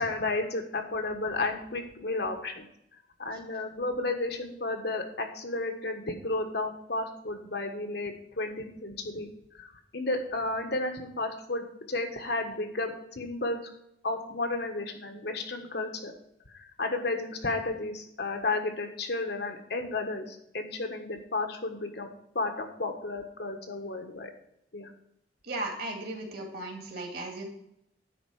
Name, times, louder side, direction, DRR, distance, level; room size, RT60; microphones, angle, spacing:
voice 1, 0.0-2.7 3.2-9.3 9.6-13.6 14.0-16.1 16.5-22.1 22.3-24.3 24.7-24.9, left 2 dB, 60° left, 4 dB, 1.3 m, -32 dB
voice 2, 25.4-27.4, right 2 dB, 55° right, 2 dB, 2.2 m, -36 dB
10.0 x 4.4 x 6.4 m, 0.78 s
head